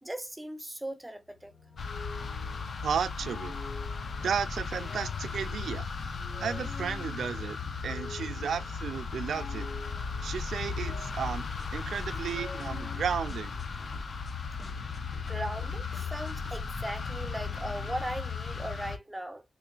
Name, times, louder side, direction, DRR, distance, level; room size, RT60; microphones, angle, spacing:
voice 1, 0.0-1.5 15.3-19.4, right 1 dB, 10° right, 0.4 m, -38 dB
sound 1, 1.2-13.0, left 3 dB, 75° left, 1.1 m, -47 dB
sound 2, 1.8-19.0, left 5 dB, 50° left, 0.5 m, -36 dB
voice 2, 2.8-3.6 4.2-5.9 6.4-7.6 7.8-9.7 10.2-11.5 11.7-13.6, right 7 dB, 90° right, 0.3 m, -33 dB
sound 3, 11.3-16.6, left 2 dB, 30° left, 0.8 m, -48 dB
3.9 x 2.9 x 2.4 m
wide cardioid pair, 170°, 0 cm